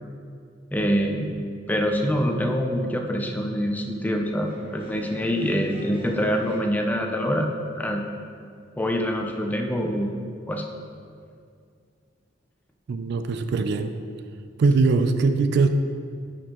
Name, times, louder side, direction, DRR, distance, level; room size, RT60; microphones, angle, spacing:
voice 1, 0.7-1.4 1.7-7.5 7.8-8.0 8.8-10.1 10.5-10.6, equal, 10° left, 2 dB, 0.5 m, -25 dB
sound 1, 4.3-7.3 9.3-10.1, equal, 30° right, 1.4 m, -45 dB
voice 2, 12.9-13.9 14.6-15.7, right 4 dB, 60° right, 9 dB, 0.3 m, -21 dB
11.0 x 4.3 x 2.9 m, 2.3 s
head